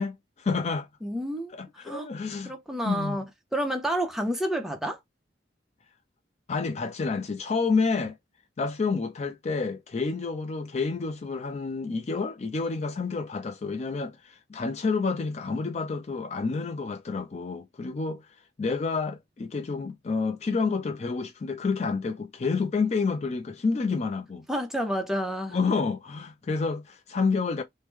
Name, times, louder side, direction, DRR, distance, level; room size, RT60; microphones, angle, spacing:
voice 1, 0.0-0.9 1.5-2.5 2.8-3.2 6.5-8.2 8.6-18.3 18.6-24.5 25.5-27.6, left 4 dB, 35° left, 0.4 m, -29 dB
voice 2, 1.0-1.5 1.8-2.1 2.5-3.2 3.5-5.0 24.5-25.6, equal, ahead, 0.6 m, -29 dB
3.0 x 2.1 x 3.4 m
head